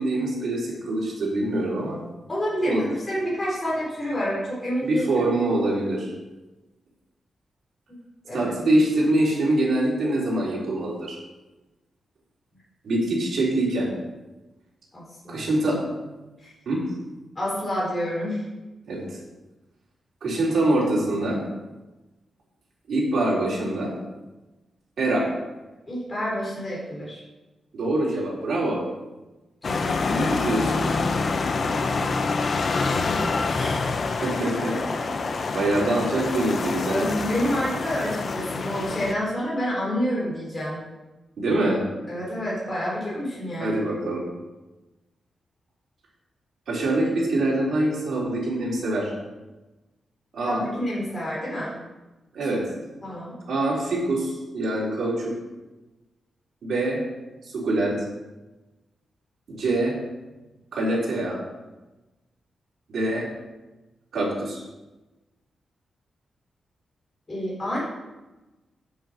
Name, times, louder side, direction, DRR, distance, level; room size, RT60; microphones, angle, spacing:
voice 1, 0.0-2.0 2.6-2.8 4.8-6.1 8.3-11.2 12.8-13.9 15.3-15.8 16.7-16.8 18.9-19.2 20.2-21.4 22.9-23.9 25.0-25.3 27.7-28.8 30.1-30.9 34.1-34.7 35.5-37.1 41.4-41.8 43.6-44.2 46.7-49.1 50.3-50.6 52.3-52.6 53.5-55.3 56.6-57.0 57.4-57.9 59.5-60.0 60.7-61.4 62.9-63.3 64.1-64.6, right 1 dB, 55° right, -5 dB, 3.8 m, -24 dB
voice 2, 2.3-5.2 7.9-8.0 8.2-8.5 14.9-15.5 16.4-16.5 17.3-18.5 25.9-27.2 29.6-30.3 32.8-33.9 35.1-35.2 36.9-40.8 42.1-43.8 50.4-51.8 53.0-53.3 67.3-67.8, equal, 20° left, -6 dB, 4.2 m, -29 dB
sound 1, 29.6-39.1, left 4 dB, 40° left, 0.7 m, -26 dB
7.8 x 7.7 x 6.6 m, 1.1 s
wide cardioid pair, 175°, 0 cm